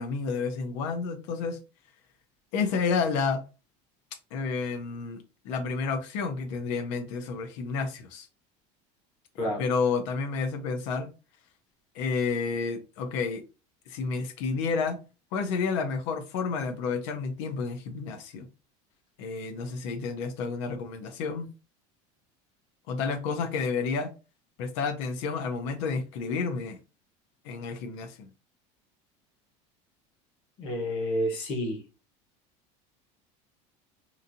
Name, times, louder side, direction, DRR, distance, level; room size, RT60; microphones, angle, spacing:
voice 1, 0.0-1.6 2.5-3.4 4.3-5.2 5.4-8.3 9.6-11.1 11.9-13.4 13.9-15.0 15.3-18.5 19.2-21.5 22.9-24.1 24.6-26.8 27.4-28.3, left 5 dB, 70° left, 0.7 m, -30 dB
voice 2, 30.6-31.8, equal, 35° left, 0.8 m, -29 dB
2.9 x 2.6 x 2.5 m
cardioid pair, 175°, 16 cm